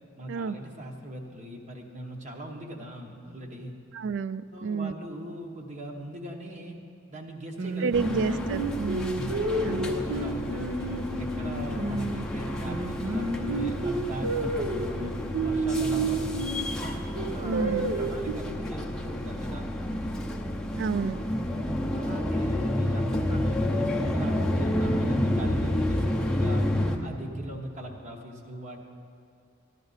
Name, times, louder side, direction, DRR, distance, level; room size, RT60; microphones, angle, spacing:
voice 1, 0.2-3.8 4.5-6.8 7.1-8.2 9.1-10.7 11.2-15.0 15.4-19.7 20.9-21.2 21.5-28.8, right 1 dB, 35° right, 1 dB, 1.0 m, -40 dB
voice 2, 3.9-4.9 7.8-9.3 9.6-9.9 17.4-17.9 20.8-21.2, right 5 dB, 60° right, 15 dB, 0.3 m, -30 dB
Singing, 7.6-12.3 12.7-16.7 17.2-18.3, right 2 dB, 85° right, 0.9 m, -30 dB
sound 1, 7.9-27.0, left 1 dB, 5° left, 0.6 m, -30 dB
13.5 x 11.0 x 4.0 m, 2.3 s
head